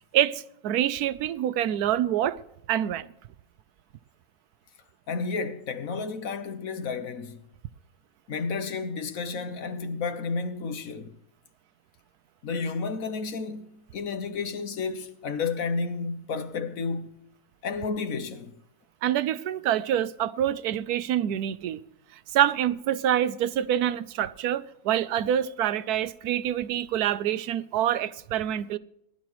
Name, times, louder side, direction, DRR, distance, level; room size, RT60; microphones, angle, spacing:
voice 1, 0.1-2.4 2.7-3.1 19.0-21.8 22.3-28.8, right 11 dB, 90° right, 1.2 m, -26 dB
voice 2, 5.1-7.4 8.3-11.2 12.4-17.2 17.6-18.5, left 4 dB, 65° left, 1.5 m, -31 dB
19.0 x 12.0 x 3.1 m
omnidirectional pair, 1.6 m